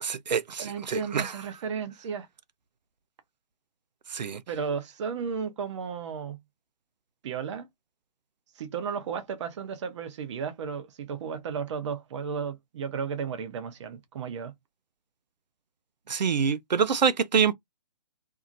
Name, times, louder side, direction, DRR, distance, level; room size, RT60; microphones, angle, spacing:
voice 1, 0.0-1.3 4.1-4.4 16.1-17.5, right 6 dB, 90° right, 0.5 m, -26 dB
voice 2, 0.6-2.3 4.5-6.4 7.2-7.7 8.6-14.5, right 6 dB, 45° right, 0.8 m, -34 dB
2.8 x 2.6 x 2.5 m
hypercardioid pair, 140°, 21 cm